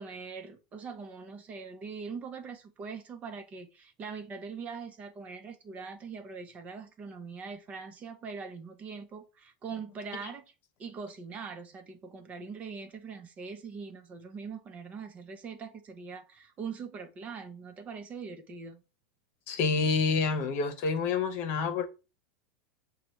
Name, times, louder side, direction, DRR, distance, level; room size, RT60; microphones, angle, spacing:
voice 1, 0.0-10.4 10.8-18.8, right 5 dB, 30° right, 0.9 m, -42 dB
voice 2, 19.5-21.9, left 4 dB, 50° left, 1.0 m, -28 dB
6.4 x 2.4 x 3.1 m
supercardioid pair, 115°, 4 cm